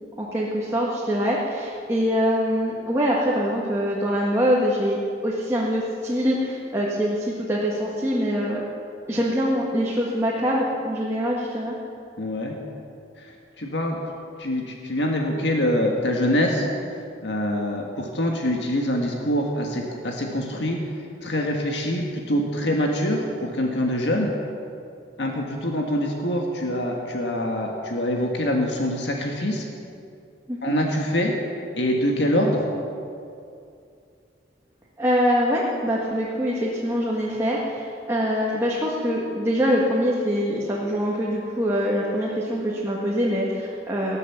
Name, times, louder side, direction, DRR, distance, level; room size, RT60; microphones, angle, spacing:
voice 1, 0.2-8.6 9.1-11.8 30.5-30.7 35.0-44.2, equal, 15° right, -5 dB, 1.7 m, -24 dB
voice 2, 12.2-12.5 13.2-14.0 14.4-16.7 17.2-24.3 25.2-29.7 30.6-31.3 31.7-32.6, left 1 dB, 75° left, 1 dB, 1.6 m, -25 dB
19.5 x 8.4 x 7.3 m, 2.5 s
head